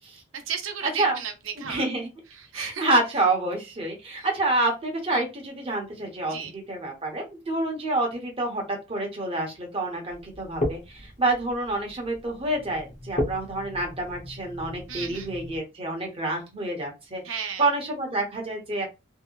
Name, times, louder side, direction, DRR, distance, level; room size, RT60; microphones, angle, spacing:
voice 1, 0.3-1.9 2.3-2.8 4.1-4.3 5.1-5.2 6.3-6.5 14.9-15.3 17.2-17.7, right 7 dB, 75° right, 0.7 m, -34 dB
voice 2, 1.7-2.1 2.5-6.4 6.7-17.2 17.6-18.8, right 2 dB, 30° right, 0.9 m, -28 dB
sound 1, 10.1-15.6, left 1 dB, 35° left, 0.6 m, -35 dB
2.7 x 2.1 x 2.2 m
head